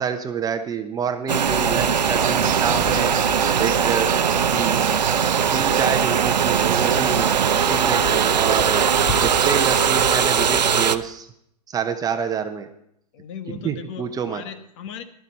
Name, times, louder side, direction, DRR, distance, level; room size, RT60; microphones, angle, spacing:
voice 1, 0.0-3.3 3.6-4.1 4.5-4.8 5.5-7.4 7.7-8.8 9.2-11.3 11.7-12.7 13.5-14.4, right 7 dB, 20° right, 7 dB, 0.9 m, -27 dB
sound 1, 1.3-11.0, right 7 dB, 90° right, 0.7 m, -20 dB
sound 2, 1.5-10.7, left 6 dB, 25° left, 1.4 m, -38 dB
Insect, 2.2-10.2, right 13 dB, 55° right, 0.7 m, -29 dB
voice 2, 5.7-6.0 13.1-15.0, left 8 dB, 50° left, 9 dB, 1.3 m, -37 dB
14.5 x 12.0 x 4.2 m, 0.74 s
hypercardioid pair, 120°, 21 cm